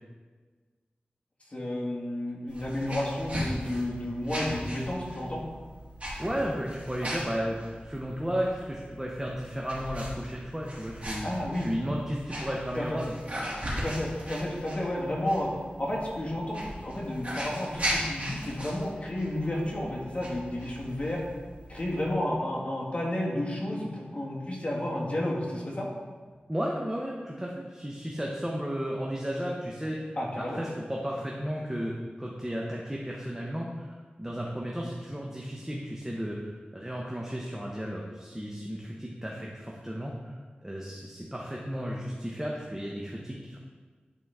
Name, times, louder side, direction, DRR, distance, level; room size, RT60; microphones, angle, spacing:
voice 1, 1.5-5.4 11.2-11.7 12.7-13.0 13.7-15.5 15.8-21.2 21.7-25.9 30.2-30.6, left 1 dB, 35° left, -5 dB, 1.9 m, -31 dB
sound 1, 2.5-22.1, equal, 40° right, 2.3 m, -38 dB
voice 2, 6.2-11.3 11.6-13.1 26.5-43.6, equal, 15° right, -2 dB, 0.9 m, -34 dB
11.0 x 4.0 x 3.6 m, 1.4 s
wide cardioid pair, 70°, 3 cm